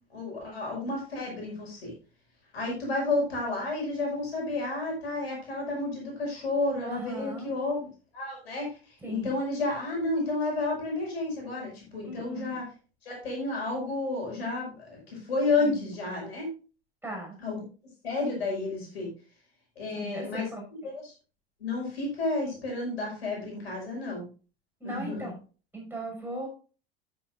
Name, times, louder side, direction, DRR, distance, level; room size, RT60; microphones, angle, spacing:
voice 1, 0.1-1.9 2.5-7.8 8.1-12.6 13.0-16.5 17.4-17.6 18.0-19.1 19.8-20.5 20.9-21.1 21.6-24.3 24.8-25.3, left 2 dB, 75° left, -1 dB, 5.7 m, -31 dB
voice 2, 6.8-7.5 9.0-9.4 12.0-12.6 15.6-15.9 17.0-17.4 19.9-20.9 24.8-25.3 25.7-26.5, right 2 dB, 5° right, -1 dB, 6.0 m, -38 dB
11.5 x 9.4 x 2.5 m, 0.35 s
figure-of-eight pair, 80°, 31 cm